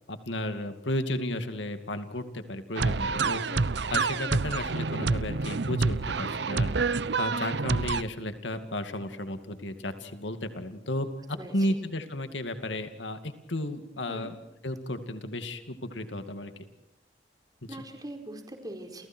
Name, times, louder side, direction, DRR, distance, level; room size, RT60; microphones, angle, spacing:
voice 1, 0.1-6.7 7.2-14.3 14.6-16.5 17.6-17.8, left 1 dB, 85° left, 8 dB, 2.4 m, -33 dB
sound 1, 2.8-8.0, right 4 dB, 65° right, 0.8 m, -28 dB
voice 2, 11.3-11.8 14.1-14.3 17.7-19.1, right 1 dB, 20° right, 4 dB, 4.5 m, -41 dB
30.0 x 29.5 x 4.6 m, 0.88 s
head